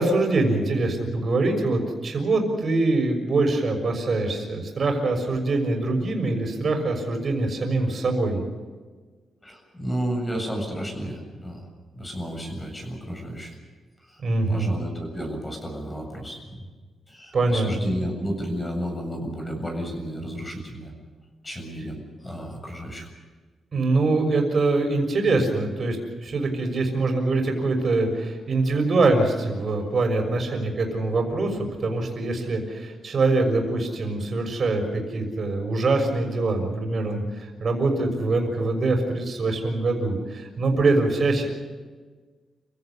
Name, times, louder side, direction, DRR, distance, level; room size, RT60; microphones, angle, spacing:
voice 1, 0.0-8.4 14.2-14.7 17.3-17.9 23.7-41.5, right 2 dB, 45° right, 4 dB, 6.4 m, -24 dB
voice 2, 9.4-11.7 11.9-13.6 14.1-14.2 14.5-16.7 17.1-20.9 21.4-23.1, equal, 15° left, 3 dB, 7.5 m, -32 dB
29.5 x 16.5 x 7.2 m, 1.4 s
cardioid pair, 125°, 0 cm